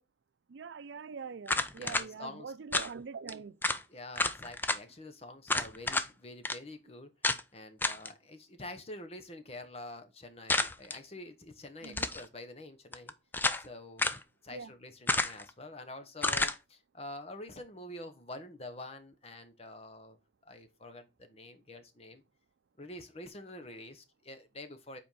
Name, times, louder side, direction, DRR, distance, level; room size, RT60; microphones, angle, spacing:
voice 1, 0.5-3.6 11.8-12.1 14.5-14.7, right 5 dB, 90° right, 0.5 m, -43 dB
sound 1, 1.5-2.1 2.7-2.9 3.3-3.4 3.6-3.8 4.2-4.8 5.5-6.1 6.4-6.6 7.2-7.4 7.8-8.1 10.5-11.0 11.8-12.2 12.9-13.7 14.0-14.2 15.1-15.5 16.2-16.6, left 2 dB, 10° left, 0.4 m, -30 dB
voice 2, 1.8-2.5 3.9-7.1 7.5-13.1 13.6-20.2 20.4-22.2 22.8-25.0, left 2 dB, 35° left, 1.0 m, -47 dB
5.1 x 4.4 x 5.3 m
head